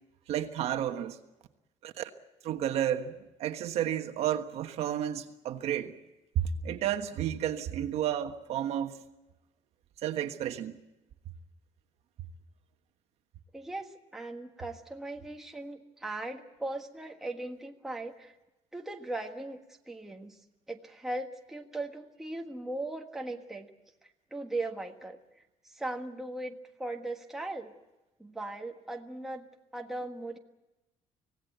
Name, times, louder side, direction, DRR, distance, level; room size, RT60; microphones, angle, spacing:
voice 1, 0.3-1.2 1.8-2.1 2.4-5.9 6.3-9.0 10.0-10.8, right 10 dB, 55° right, 1.4 m, -32 dB
voice 2, 13.5-18.3 18.7-19.6 19.9-20.4 20.7-23.7 24.0-27.7 28.2-29.5 29.7-30.4, right 2 dB, 5° right, 1.5 m, -38 dB
25.5 x 17.5 x 8.1 m
cardioid pair, 165°, 13 cm